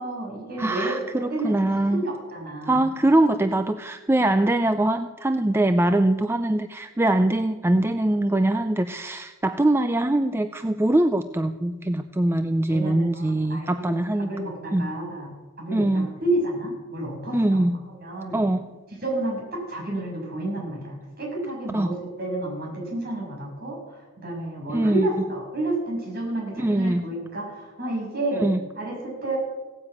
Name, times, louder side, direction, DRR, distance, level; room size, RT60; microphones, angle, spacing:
voice 1, 0.0-1.0 1.3-1.6 1.9-2.9 12.7-15.3 15.6-17.6 18.0-18.4 19.0-28.5 28.8-29.4, right 1 dB, 50° right, -2 dB, 6.9 m, -30 dB
voice 2, 0.6-2.0 2.7-14.3 14.7-14.9 15.7-16.1 17.3-17.8 18.3-18.7 21.7-22.0 24.7-25.1 26.6-27.0 28.4-28.6, right 1 dB, 10° right, 9 dB, 0.4 m, -22 dB
16.5 x 9.8 x 8.3 m, 1.3 s
head